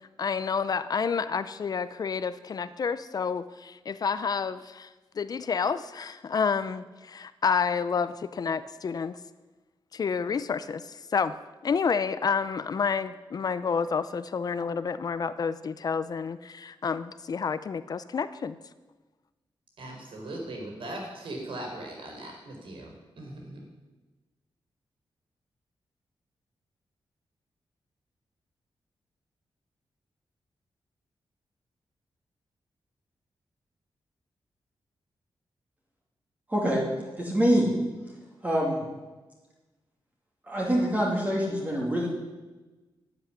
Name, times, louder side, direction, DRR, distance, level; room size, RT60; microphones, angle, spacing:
voice 1, 0.2-4.9 5.2-9.2 9.9-11.3 11.6-18.6, left 6 dB, 45° left, 14 dB, 0.5 m, -29 dB
voice 2, 19.8-23.6, right 1 dB, 70° right, 1 dB, 4.4 m, -39 dB
voice 3, 36.5-36.8 37.2-37.7 38.4-38.8 40.5-42.1, equal, 15° right, -2 dB, 2.6 m, -25 dB
12.0 x 8.3 x 9.9 m, 1.2 s
wide cardioid pair, 175°, 9 cm